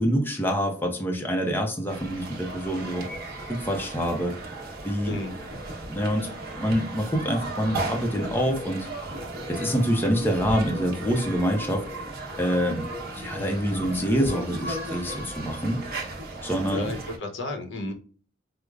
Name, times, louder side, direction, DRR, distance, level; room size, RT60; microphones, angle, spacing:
voice 1, 0.0-3.1 3.5-4.4 4.8-5.2 5.9-6.3 6.6-8.9 9.5-11.9 12.4-12.9 13.1-15.8 16.4-16.9, equal, 10° left, 1 dB, 0.5 m, -26 dB
sound 1, 1.9-17.2, right 1 dB, 55° right, 0.9 m, -35 dB
voice 2, 5.1-5.4 16.7-17.9, left 2 dB, 65° left, 4 dB, 0.8 m, -32 dB
4.7 x 2.0 x 2.3 m, 0.41 s
head